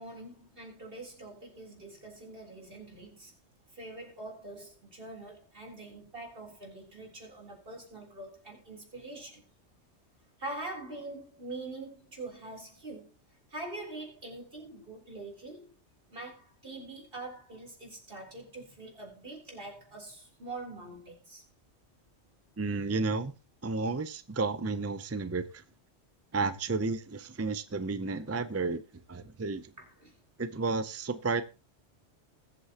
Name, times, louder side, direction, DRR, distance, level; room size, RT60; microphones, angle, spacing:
voice 1, 0.0-3.3 3.7-9.4 10.4-13.1 13.5-15.7 16.1-21.4 29.8-30.1, right 2 dB, 50° right, 3.9 m, -44 dB
voice 2, 22.6-23.3 23.6-25.6 26.3-28.8 29.1-29.6 30.4-31.4, right 3 dB, 20° right, 0.4 m, -32 dB
20.5 x 8.1 x 2.9 m
omnidirectional pair, 1.2 m